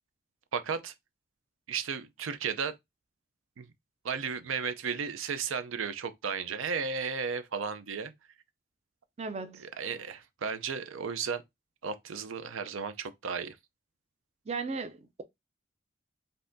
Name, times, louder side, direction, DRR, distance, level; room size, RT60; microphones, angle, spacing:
voice 1, 0.5-0.9 1.7-2.8 3.6-3.7 4.0-8.1 9.6-11.4 11.8-13.6, right 6 dB, 85° right, 0.5 m, -34 dB
voice 2, 9.2-9.6 14.5-15.2, right 4 dB, 30° right, 0.4 m, -36 dB
5.4 x 2.7 x 2.6 m
head